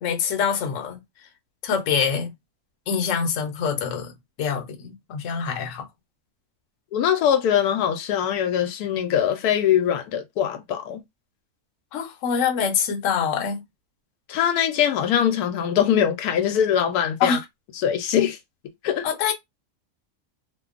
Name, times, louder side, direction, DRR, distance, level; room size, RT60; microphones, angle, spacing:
voice 1, 0.0-1.0 1.6-2.3 2.9-4.1 4.4-5.9 11.9-13.6 17.2-17.4 19.0-19.3, left 7 dB, 60° left, 1.0 m, -25 dB
voice 2, 6.9-11.0 14.3-17.4 17.7-18.4 18.8-19.1, left 9 dB, 85° left, 1.1 m, -22 dB
2.8 x 2.2 x 2.4 m
omnidirectional pair, 1.6 m